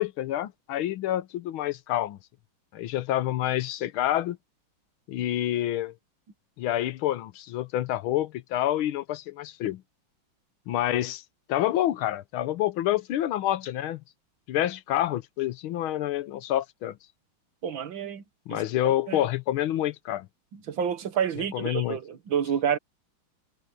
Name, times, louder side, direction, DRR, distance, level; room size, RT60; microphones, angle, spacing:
voice 1, 0.0-2.2 2.7-4.4 5.1-5.9 6.6-9.8 10.7-11.2 11.5-14.0 14.5-17.0 18.5-20.3 21.5-22.0, left 13 dB, 85° left, 1.6 m, -28 dB
voice 2, 17.6-18.2 18.5-18.6 19.1-19.3 20.5-22.8, right 8 dB, 70° right, 2.2 m, -29 dB
omnidirectional pair, 2.2 m